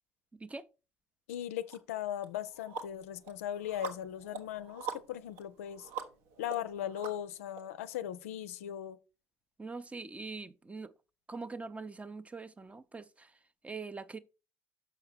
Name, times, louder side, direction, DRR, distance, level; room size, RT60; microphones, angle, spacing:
voice 1, 0.3-0.7 9.6-10.9 11.3-14.2, right 4 dB, 15° right, 0.6 m, -43 dB
voice 2, 1.3-5.9 6.4-9.0, left 11 dB, 70° left, 0.4 m, -38 dB
sound 1, 1.7-1.8 2.2-7.6, right 6 dB, 70° right, 1.0 m, -44 dB
6.7 x 5.7 x 4.5 m
figure-of-eight pair, 60°, 8 cm